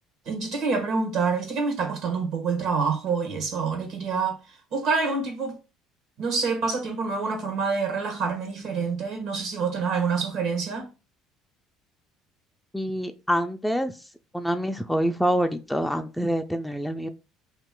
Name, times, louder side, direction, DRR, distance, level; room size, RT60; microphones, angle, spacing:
voice 1, 0.3-4.4 4.7-5.6 6.2-10.9, right 5 dB, 70° right, 1.2 m, -27 dB
voice 2, 12.7-13.9 14.3-17.1, equal, 5° left, 0.4 m, -26 dB
2.9 x 2.5 x 3.7 m
supercardioid pair, 75°, 0 cm